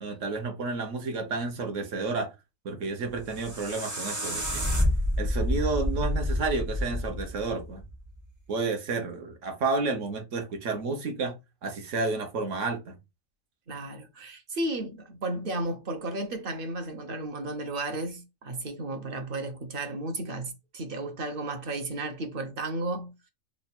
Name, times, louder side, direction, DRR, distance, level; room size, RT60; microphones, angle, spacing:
voice 1, 0.0-2.3 2.6-4.7 5.2-7.8 8.5-11.3 11.6-13.0, right 3 dB, 65° right, 1.2 m, -31 dB
sound 1, 3.0-8.1, left 1 dB, 20° right, 0.5 m, -29 dB
voice 2, 13.7-23.1, right 2 dB, 50° right, 0.8 m, -33 dB
3.5 x 2.3 x 4.1 m
omnidirectional pair, 1.4 m